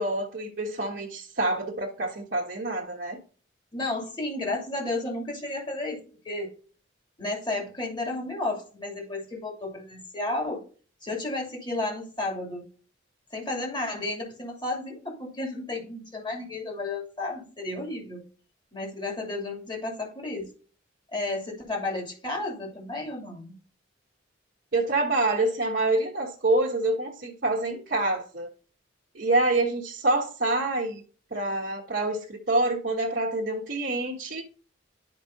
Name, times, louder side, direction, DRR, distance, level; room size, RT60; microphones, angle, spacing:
voice 1, 0.0-3.2 24.7-28.5 29.1-31.0 31.3-34.5, right 2 dB, 55° right, 1.2 m, -26 dB
voice 2, 3.7-6.5 7.2-10.6 11.0-12.7 13.3-18.3 18.7-20.5 21.1-23.5, left 2 dB, 25° left, 2.8 m, -32 dB
11.5 x 5.2 x 2.7 m
head